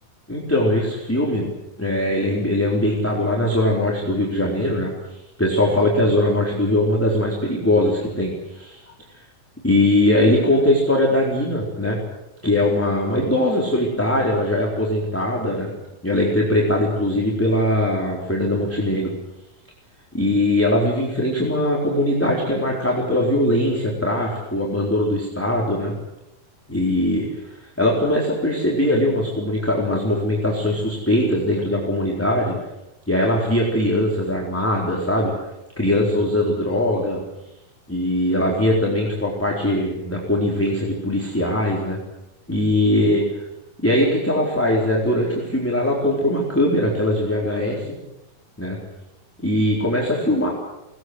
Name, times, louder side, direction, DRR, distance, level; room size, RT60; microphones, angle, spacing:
voice 1, 0.3-1.5 1.8-4.9 5.4-8.8 9.6-12.0 12.4-15.7 16.0-19.1 20.1-25.9 26.7-32.6 33.1-35.3 35.8-37.2 37.9-42.0 42.5-43.2 43.8-47.9 48.6-48.8 49.4-50.5, left 1 dB, 5° left, -3 dB, 3.7 m, -21 dB
24.5 x 20.0 x 8.0 m, 0.95 s
omnidirectional pair, 4.1 m